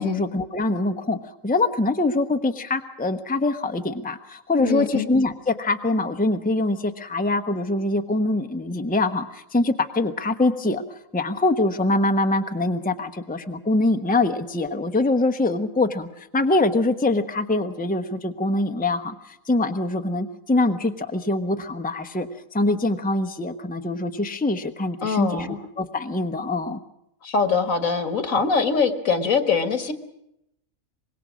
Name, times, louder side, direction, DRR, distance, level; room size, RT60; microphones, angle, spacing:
voice 1, 0.0-10.8 11.1-26.8, left 2 dB, 5° left, 8 dB, 1.0 m, -24 dB
voice 2, 4.6-5.1 25.0-25.6 27.2-29.9, left 5 dB, 65° left, 9 dB, 2.0 m, -23 dB
25.0 x 21.5 x 6.3 m, 0.80 s
omnidirectional pair, 1.5 m